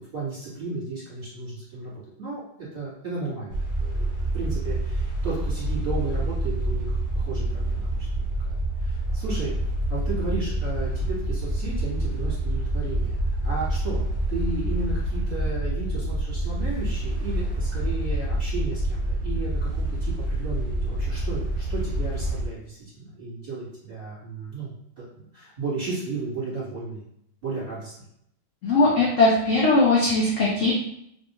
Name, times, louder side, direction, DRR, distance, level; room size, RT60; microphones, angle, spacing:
voice 1, 0.0-4.0 4.3-9.5 9.9-13.2 13.4-14.0 14.3-27.0 27.4-27.9, right 3 dB, 30° right, -9 dB, 1.5 m, -34 dB
sound 1, 3.5-22.5, right 1 dB, 55° right, 0.8 m, -27 dB
voice 2, 28.6-30.7, left 2 dB, 70° left, -5 dB, 0.7 m, -19 dB
3.3 x 2.6 x 2.9 m, 0.73 s
omnidirectional pair, 2.2 m